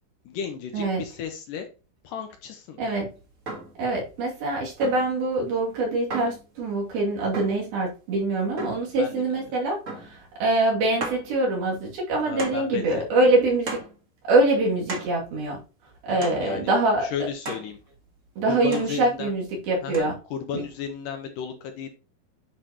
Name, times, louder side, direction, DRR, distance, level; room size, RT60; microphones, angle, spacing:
voice 1, 0.3-1.7 2.0-2.8 9.0-9.5 12.3-13.3 16.1-16.7 17.0-17.8 18.5-19.3 19.8-22.0, left 7 dB, 75° left, 5 dB, 2.2 m, -34 dB
voice 2, 2.8-3.1 3.8-13.8 14.3-15.6 16.0-17.1 18.4-20.1 20.5-20.6, right 2 dB, 80° right, -3 dB, 4.4 m, -24 dB
sound 1, 3.5-3.8 4.8-5.2 6.1-6.5 7.3-7.7 8.6-8.9 9.9-10.2 10.5-10.6 11.0-11.3 12.4-12.7 13.7-14.0 14.9-15.2 16.2-16.5 17.4-17.7 18.7-19.0 19.9-20.0, right 2 dB, 55° right, 0.8 m, -35 dB
9.9 x 4.9 x 2.9 m, 0.33 s
omnidirectional pair, 4.2 m